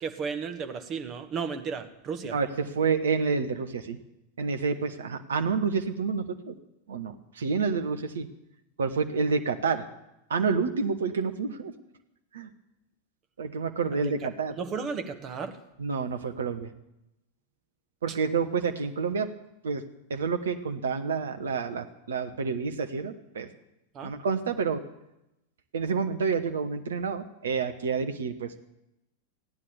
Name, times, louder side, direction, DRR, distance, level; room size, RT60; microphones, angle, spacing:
voice 1, 0.0-2.4 14.2-14.3 14.6-15.6 18.1-18.2 23.9-24.1, right 5 dB, 30° right, 7 dB, 1.3 m, -34 dB
voice 2, 2.3-4.0 4.4-6.5 6.9-8.3 8.8-9.8 10.3-11.7 12.3-12.5 13.4-14.5 15.8-16.7 18.0-19.3 19.6-19.8 20.1-23.5 24.0-24.8 25.7-28.5, right 5 dB, 65° right, 8 dB, 1.2 m, -29 dB
15.5 x 9.8 x 7.1 m, 0.88 s
figure-of-eight pair, 90°, 0 cm